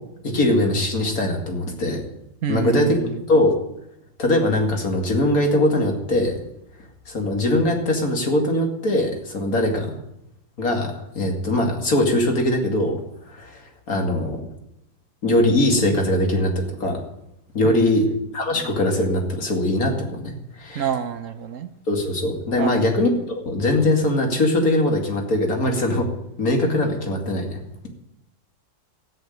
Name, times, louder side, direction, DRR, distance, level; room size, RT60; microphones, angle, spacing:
voice 1, 0.2-2.0 2.5-3.0 3.3-3.6 4.2-6.4 7.1-9.9 10.6-13.0 13.3-13.6 13.9-14.4 15.2-17.0 17.5-18.1 18.3-20.9 21.9-26.1 26.4-27.6, left 1 dB, 45° left, 2 dB, 2.8 m, -21 dB
voice 2, 2.4-3.2 17.6-18.2 20.7-21.7 22.6-23.0, right 8 dB, 55° right, 9 dB, 1.0 m, -28 dB
13.5 x 9.2 x 9.3 m, 0.82 s
omnidirectional pair, 2.0 m